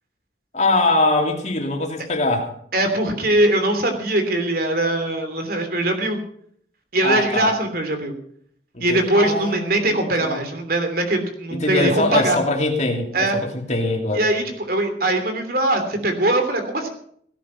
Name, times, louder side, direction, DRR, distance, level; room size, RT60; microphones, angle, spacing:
voice 1, 0.5-2.6 7.0-7.5 8.7-10.4 11.5-14.3, left 2 dB, 35° left, 1 dB, 2.9 m, -22 dB
voice 2, 2.7-6.2 6.9-8.1 8.8-12.4 13.1-13.4 14.1-16.9, right 1 dB, 50° right, 7 dB, 3.1 m, -21 dB
17.5 x 10.5 x 5.8 m, 0.63 s
head